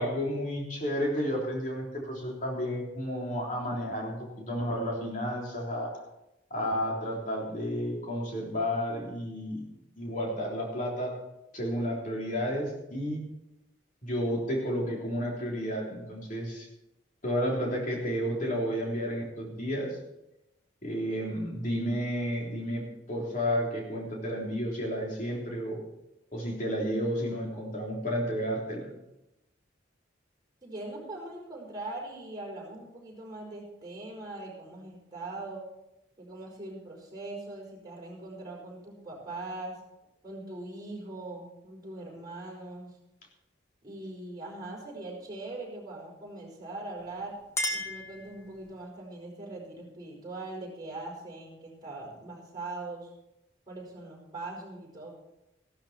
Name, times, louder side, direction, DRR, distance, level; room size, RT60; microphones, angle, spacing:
voice 1, 0.0-6.0 6.5-9.7 10.0-11.2 11.5-13.3 14.0-16.7 17.2-20.0 20.8-25.8 26.3-28.9, equal, 45° left, -1 dB, 3.5 m, -31 dB
voice 2, 30.6-35.6 36.2-39.8 40.2-43.0 43.8-47.3 47.7-53.1 53.7-55.1, right 2 dB, 20° right, -4 dB, 5.0 m, -41 dB
Chink clink, 47.0-48.9, left 1 dB, 15° left, 1.6 m, -36 dB
15.0 x 12.5 x 4.4 m, 0.91 s
head